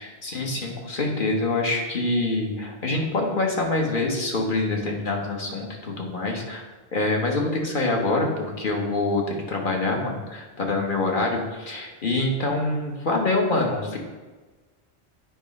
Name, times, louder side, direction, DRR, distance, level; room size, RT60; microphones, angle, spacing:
voice 1, 0.0-6.6 6.9-14.0, left 2 dB, 50° left, 0 dB, 1.2 m, -25 dB
8.8 x 3.1 x 5.2 m, 1.3 s
omnidirectional pair, 1.1 m